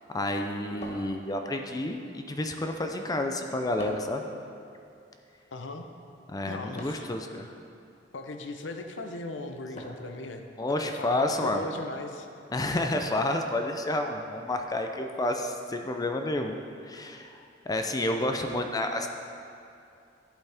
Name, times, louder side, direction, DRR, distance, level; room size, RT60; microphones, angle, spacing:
voice 1, 0.1-4.3 6.3-7.5 10.6-11.6 12.5-16.6 16.9-19.1, left 1 dB, 20° left, 4 dB, 0.5 m, -30 dB
sound 1, 0.8-1.7 3.8-4.2 6.8-7.2 9.8-10.2, equal, 40° left, 1.1 m, -43 dB
voice 2, 5.5-5.8 6.5-7.0 8.1-12.3, left 2 dB, 90° left, 5 dB, 0.7 m, -38 dB
11.5 x 8.1 x 3.5 m, 2.5 s
head